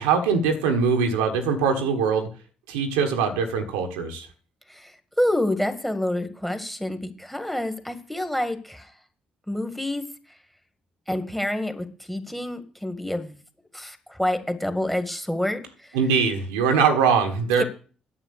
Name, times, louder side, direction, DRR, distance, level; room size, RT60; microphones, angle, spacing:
voice 1, 0.0-2.3 2.7-4.3 15.9-17.6, right 6 dB, 80° right, 5 dB, 1.5 m, -22 dB
voice 2, 5.2-8.9 9.5-10.0 11.1-13.4 13.7-15.6 15.9-16.0 17.6-17.7, left 1 dB, 5° left, 8 dB, 1.9 m, -27 dB
10.0 x 7.3 x 6.7 m, 0.39 s
hypercardioid pair, 45°, 3 cm